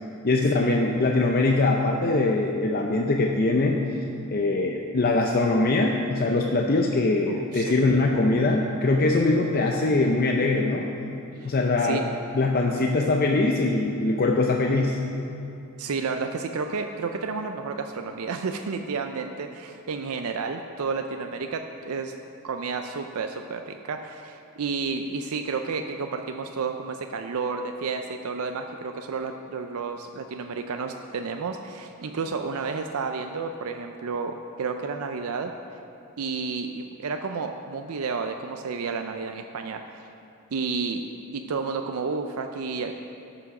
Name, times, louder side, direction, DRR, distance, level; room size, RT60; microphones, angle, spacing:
voice 1, 0.2-3.8 4.3-10.9 11.4-12.0 12.3-15.0, left 2 dB, 45° left, 1 dB, 0.6 m, -22 dB
voice 2, 7.3-7.8 11.4-11.5 11.8-12.1 15.8-22.1 22.4-35.5 36.2-39.9 40.5-41.1 41.3-42.9, right 4 dB, 90° right, 5 dB, 0.5 m, -31 dB
12.5 x 6.0 x 5.9 m, 2.8 s
head